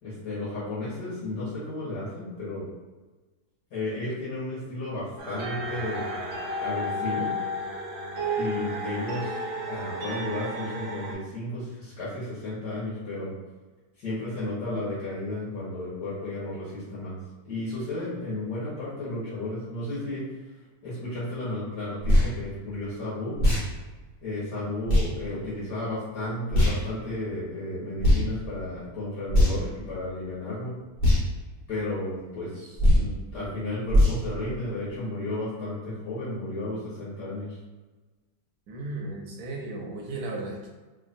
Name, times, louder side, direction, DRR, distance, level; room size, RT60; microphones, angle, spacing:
voice 1, 0.0-2.7 3.7-6.0 6.6-7.3 8.4-13.3 14.0-17.2 17.4-20.2 20.8-23.3 24.2-30.7 31.7-37.6, left 1 dB, 85° left, -10 dB, 2.0 m, -33 dB
sound 1, 5.2-11.1, equal, 50° right, 0.9 m, -32 dB
sound 2, 22.0-22.3 23.4-23.7 24.9-25.1 26.5-26.8 28.0-28.2 29.3-29.7 31.0-31.2 32.8-33.1 33.9-34.2, left 1 dB, 40° left, 1.2 m, -20 dB
voice 2, 38.7-40.7, right 2 dB, 70° right, -1 dB, 1.2 m, -35 dB
4.3 x 2.9 x 2.6 m, 1.3 s
omnidirectional pair, 1.8 m